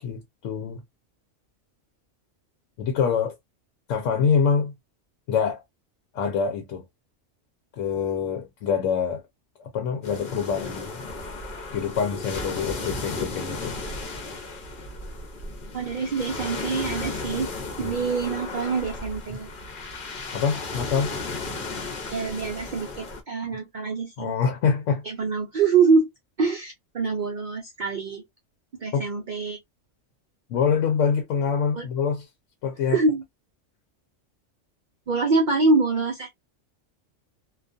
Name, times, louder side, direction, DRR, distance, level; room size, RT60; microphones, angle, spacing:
voice 1, 0.0-0.8 2.8-3.4 3.9-4.7 5.3-5.6 6.1-6.8 7.7-9.2 9.6-11.0 11.7-13.8 17.8-18.0 20.3-21.1 24.2-25.0 28.9-29.1 30.5-32.3 32.6-33.0, left 6 dB, 90° left, 0.9 m, -25 dB
sound 1, 10.0-23.2, left 3 dB, 50° left, 0.8 m, -34 dB
voice 2, 15.7-17.5 17.8-19.5 22.1-24.3 25.0-26.1 26.4-28.2 28.8-29.6 31.7-31.9 32.9-33.2 35.1-36.4, right 4 dB, 55° right, 0.5 m, -25 dB
2.4 x 2.3 x 2.4 m
omnidirectional pair, 1.3 m